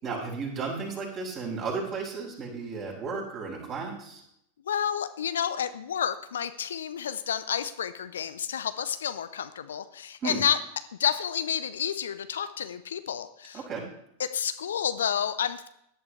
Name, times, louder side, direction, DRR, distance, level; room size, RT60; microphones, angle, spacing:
voice 1, 0.0-4.2 10.2-10.4 13.5-13.8, right 4 dB, 35° right, -3 dB, 6.1 m, -34 dB
voice 2, 4.7-10.6 11.0-13.6 14.2-15.7, left 8 dB, 65° left, 12 dB, 0.7 m, -30 dB
17.5 x 11.0 x 3.3 m, 0.75 s
figure-of-eight pair, 90°, 0 cm